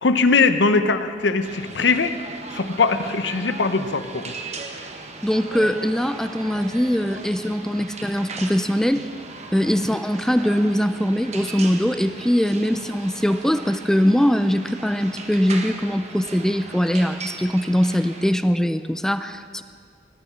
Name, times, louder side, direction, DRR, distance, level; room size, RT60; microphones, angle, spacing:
voice 1, 0.0-2.1 2.5-4.3 7.8-7.9, left 4 dB, 80° left, 10 dB, 0.8 m, -20 dB
sound 1, 1.4-18.3, right 3 dB, 40° right, 1.2 m, -38 dB
voice 2, 5.2-9.0 9.5-19.6, equal, 5° left, 11 dB, 0.4 m, -21 dB
18.5 x 6.6 x 7.5 m, 2.1 s
head